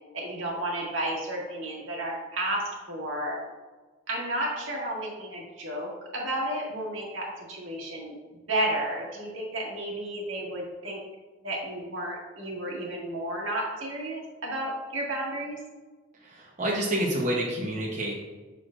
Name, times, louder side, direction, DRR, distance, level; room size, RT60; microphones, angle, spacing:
voice 1, 0.1-3.4 4.1-8.2 8.5-11.0 11.4-15.6, right 1 dB, 80° right, -3 dB, 1.8 m, -32 dB
voice 2, 16.2-18.1, right 1 dB, 40° right, -4 dB, 1.0 m, -28 dB
6.8 x 6.2 x 2.5 m, 1.3 s
head